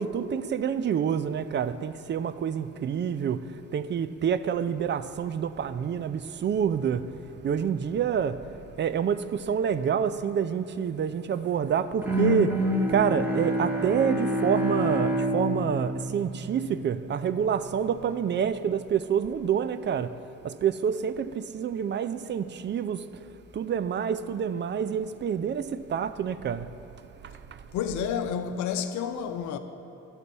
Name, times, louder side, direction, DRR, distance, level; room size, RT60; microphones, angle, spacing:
voice 1, 0.0-7.1 7.4-8.4 8.8-20.1 20.4-23.1 23.5-26.7 27.2-27.6, right 7 dB, 40° right, 0.4 m, -27 dB
Bowed string instrument, 12.0-17.1, equal, 5° right, 1.2 m, -27 dB
voice 2, 27.7-29.6, left 7 dB, 75° left, 0.6 m, -30 dB
12.0 x 4.1 x 6.9 m
cardioid pair, 90°, 30 cm